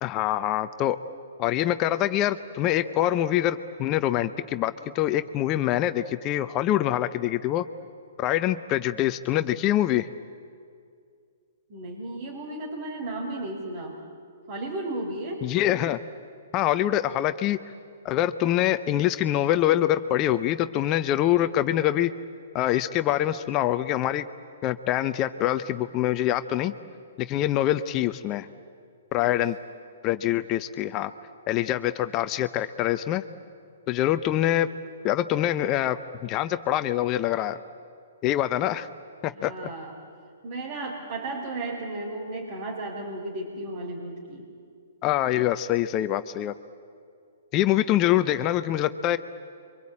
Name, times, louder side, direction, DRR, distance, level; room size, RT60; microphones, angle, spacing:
voice 1, 0.0-1.0 1.4-7.7 8.2-10.1 15.4-16.0 16.5-17.6 18.0-22.1 22.5-24.3 24.6-26.7 27.2-28.5 29.1-29.6 30.0-31.1 31.5-33.2 33.9-34.7 35.0-36.0 36.2-37.6 38.2-38.9 39.2-39.5 45.0-46.5 47.5-49.2, left 13 dB, 30° left, 11 dB, 0.8 m, -25 dB
voice 2, 11.7-14.0 14.5-15.5 29.2-29.3 39.3-39.9 40.4-44.5, right 2 dB, 50° right, -3 dB, 4.5 m, -34 dB
27.5 x 24.5 x 8.7 m, 2.3 s
hypercardioid pair, 130°, 0 cm